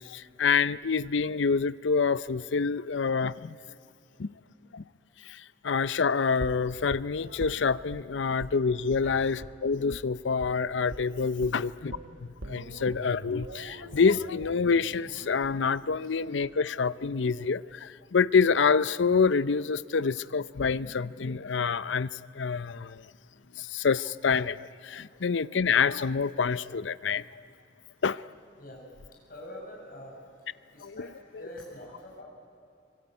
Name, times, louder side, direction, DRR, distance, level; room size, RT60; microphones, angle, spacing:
voice 1, 0.1-3.5 4.2-4.3 4.7-4.8 5.6-11.9 12.5-17.6 18.1-22.1 22.4-22.9 23.7-24.6 24.9-27.2 28.0-28.2 30.8-31.1, left 5 dB, 80° left, 17 dB, 0.6 m, -26 dB
sound 1, 6.4-8.0 8.4-8.6 8.9-9.0 9.4-9.5 9.9-10.0 10.4-10.6 10.9-11.0 11.4-17.4 17.7-17.8, right 1 dB, 85° right, 1.4 m, -44 dB
voice 2, 29.1-30.2 30.7-32.2, left 1 dB, 50° left, -2 dB, 7.1 m, -45 dB
24.0 x 22.0 x 9.5 m, 2.5 s
head